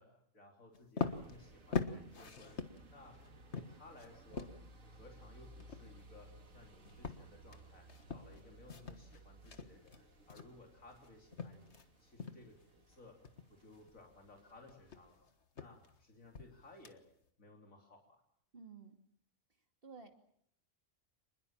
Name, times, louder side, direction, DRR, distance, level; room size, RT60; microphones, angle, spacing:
voice 1, 0.0-2.6 2.9-3.2 3.5-4.5 4.9-11.7 12.0-13.2 13.5-15.3 15.5-17.1 17.4-18.2, left 2 dB, 90° left, 1 dB, 3.8 m, -59 dB
sound 1, 0.7-11.9 12.2-12.6 13.0-17.3, left 5 dB, 55° left, 1.8 m, -44 dB
sound 2, 1.0-15.1, right 2 dB, 75° right, 2.5 m, -60 dB
voice 2, 18.5-19.0 19.8-20.2, right 5 dB, 45° right, 5 dB, 2.8 m, -53 dB
26.5 x 21.0 x 7.3 m, 0.67 s
omnidirectional pair, 1.4 m